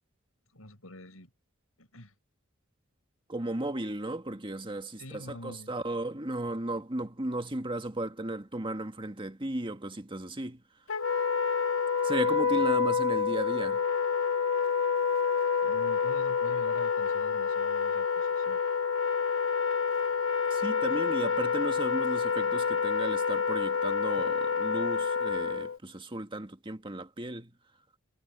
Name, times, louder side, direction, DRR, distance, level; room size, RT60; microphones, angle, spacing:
voice 1, 0.5-1.3 1.8-2.1 5.0-5.7 12.5-12.8 15.6-18.6 24.2-24.3, left 1 dB, 85° left, 7.2 m, -46 dB
voice 2, 3.3-10.6 12.0-13.8 20.5-27.5, right 1 dB, 25° right, 1.8 m, -35 dB
Wind instrument woodwind instrument, 10.9-25.8, left 6 dB, 65° left, 1.2 m, -28 dB
head